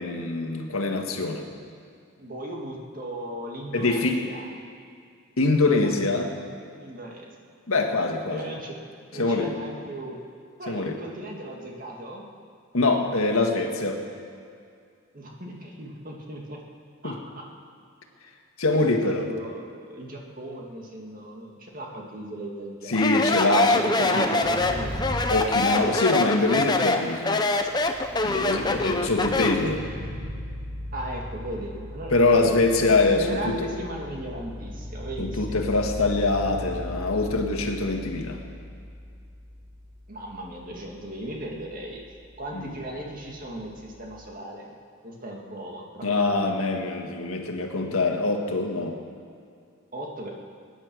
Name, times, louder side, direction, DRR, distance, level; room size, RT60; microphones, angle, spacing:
voice 1, 0.0-1.4 3.7-4.2 5.4-6.3 7.7-8.5 9.2-9.5 10.7-11.0 12.7-14.0 17.0-17.1 18.6-19.3 22.9-24.3 25.3-27.4 28.2-29.8 32.1-33.7 35.2-38.4 42.5-42.6 46.0-48.9, left 2 dB, 80° left, 3 dB, 1.7 m, -24 dB
voice 2, 2.2-4.5 5.8-5.9 6.8-7.3 8.3-8.7 9.1-10.2 10.6-12.3 15.1-16.6 17.0-17.4 18.7-24.9 28.5-29.1 30.9-35.6 40.1-42.0 42.4-44.7 45.0-46.4 49.9-50.3, right 1 dB, 40° right, -1 dB, 2.1 m, -37 dB
Speech, 22.9-29.7, left 2 dB, 20° left, 0.7 m, -24 dB
sound 1, 24.4-26.2 27.2-44.1, equal, 5° right, 2.2 m, -38 dB
21.5 x 10.0 x 6.3 m, 2.3 s
head